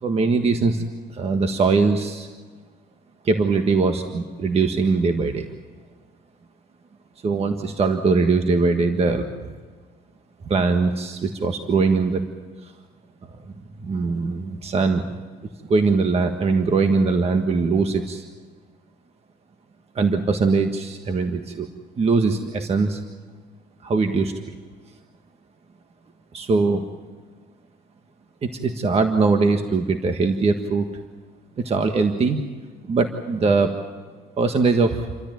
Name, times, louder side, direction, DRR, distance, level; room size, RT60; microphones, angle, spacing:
voice 1, 0.0-2.3 3.2-5.5 7.2-9.3 10.4-12.2 12.6-12.7 13.5-13.6 13.8-18.2 19.9-21.7 22.0-23.0 23.8-24.4 26.3-26.8 28.4-30.9 31.6-32.4 32.9-33.7 34.4-35.1, right 4 dB, 35° right, 6 dB, 1.6 m, -21 dB
28.5 x 13.5 x 9.3 m, 1.5 s
cardioid pair, 110°, 17 cm